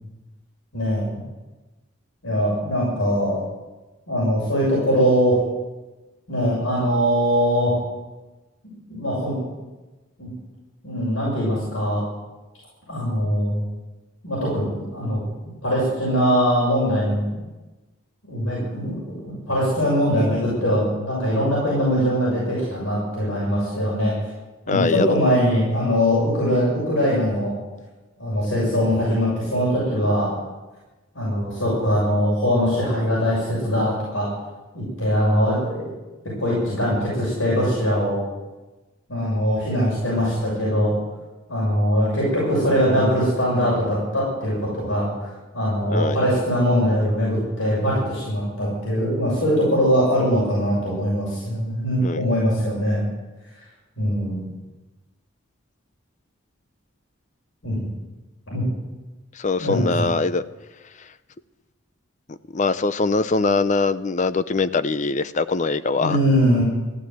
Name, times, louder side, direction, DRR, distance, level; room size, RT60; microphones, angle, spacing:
voice 1, 0.7-1.2 2.2-3.4 4.1-5.4 6.3-7.8 8.9-9.4 10.2-10.3 10.8-12.0 12.9-13.6 14.2-15.2 15.6-17.3 18.2-24.1 24.7-27.5 28.2-30.3 31.1-34.3 34.7-35.9 36.4-38.2 39.1-40.9 41.5-53.0 54.0-54.4 57.6-57.9 58.5-58.6 59.6-60.1 66.0-66.6, equal, 85° left, -6 dB, 6.7 m, -22 dB
voice 2, 24.7-25.2 45.9-46.2 52.0-52.2 59.4-60.4 62.3-66.2, left 3 dB, 35° left, 13 dB, 0.5 m, -22 dB
15.0 x 11.5 x 7.9 m, 1.1 s
head